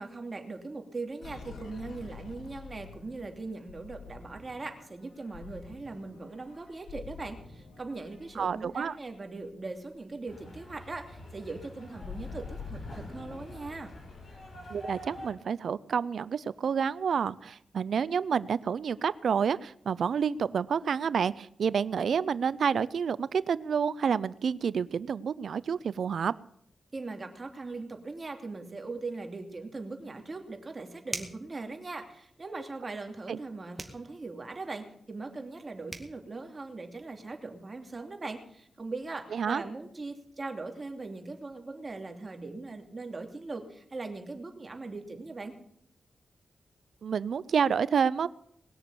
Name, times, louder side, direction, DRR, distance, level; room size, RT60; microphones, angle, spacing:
voice 1, 0.0-14.0 26.9-45.6, right 3 dB, 40° right, 4 dB, 2.7 m, -40 dB
sound 1, 1.2-9.6 10.0-10.2 10.5-14.6, left 5 dB, 75° left, 2.6 m, -47 dB
voice 2, 8.4-8.9 14.7-26.3 33.3-33.4 39.3-39.6 47.0-48.3, right 7 dB, 75° right, 19 dB, 0.5 m, -29 dB
sound 2, 10.3-15.3, left 1 dB, 60° left, 6.1 m, -47 dB
sound 3, 31.1-31.5 33.8-34.0 35.6-35.7 35.9-36.1, right 2 dB, 25° right, 2.3 m, -38 dB
20.5 x 6.8 x 8.6 m, 0.71 s
cardioid pair, 55°, 0 cm